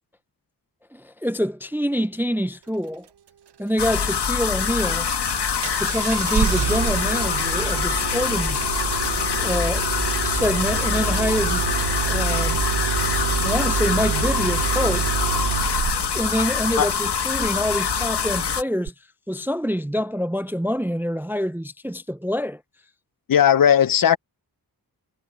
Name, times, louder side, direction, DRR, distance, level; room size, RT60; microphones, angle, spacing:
voice 1, 0.9-3.1 3.6-5.1 5.8-8.6 9.4-9.9 10.2-11.6 12.1-12.6 13.4-15.1 16.1-18.9 19.3-22.6, equal, 5° right, 0.4 m, -26 dB
sound 1, 3.8-18.6, left 6 dB, 85° left, 1.7 m, -24 dB
Engine starting, 5.6-16.2 18.9-19.0, right 9 dB, 85° right, 0.8 m, -27 dB
voice 2, 23.3-24.2, left 9 dB, 60° left, 0.6 m, -16 dB
wide cardioid pair, 135°, 39 cm